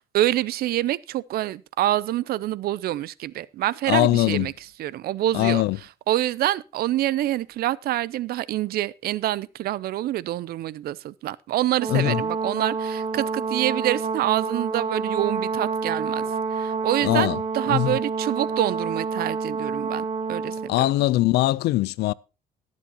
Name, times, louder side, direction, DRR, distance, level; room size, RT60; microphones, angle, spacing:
voice 1, 0.0-4.5 4.8-5.6 6.1-16.2 16.5-20.9, right 14 dB, 65° right, 0.5 m, -26 dB
voice 2, 3.9-4.5 5.3-5.8 11.9-12.2 17.0-17.4 17.7-18.0 20.7-22.1, left 16 dB, 75° left, 0.5 m, -21 dB
Brass instrument, 11.8-20.7, right 4 dB, 50° right, 1.3 m, -28 dB
20.5 x 7.5 x 2.9 m
cardioid pair, 110°, 17 cm